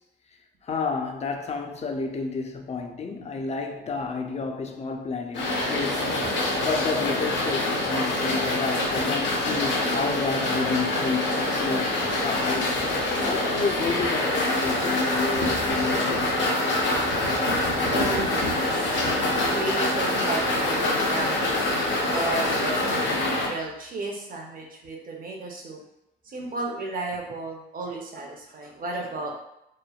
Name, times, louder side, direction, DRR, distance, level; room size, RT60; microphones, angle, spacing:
voice 1, 0.6-6.1 6.6-12.8 13.2-16.7, left 4 dB, 35° left, 4 dB, 0.4 m, -30 dB
sound 1, 5.3-23.5, left 1 dB, 70° left, 0.7 m, -25 dB
voice 2, 17.9-25.8 26.3-29.3, right 2 dB, 45° right, 0 dB, 0.7 m, -34 dB
3.1 x 2.2 x 2.3 m, 0.84 s
cardioid pair, 90°, 20 cm